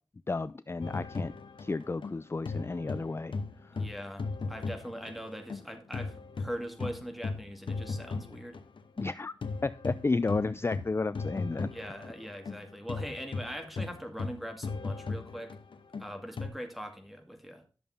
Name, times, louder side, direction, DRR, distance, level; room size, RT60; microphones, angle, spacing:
voice 1, 0.3-1.3 1.6-3.3 3.6-3.8 9.0-9.3 9.6-11.7, left 3 dB, 30° left, 15 dB, 0.3 m, -32 dB
sound 1, 0.8-5.6 5.9-16.5, left 4 dB, 90° left, 0.9 m, -37 dB
voice 2, 3.7-8.6 11.7-15.6 16.0-17.6, equal, ahead, 5 dB, 2.1 m, -41 dB
11.0 x 6.7 x 3.6 m, 0.36 s
wide cardioid pair, 60°, 8 cm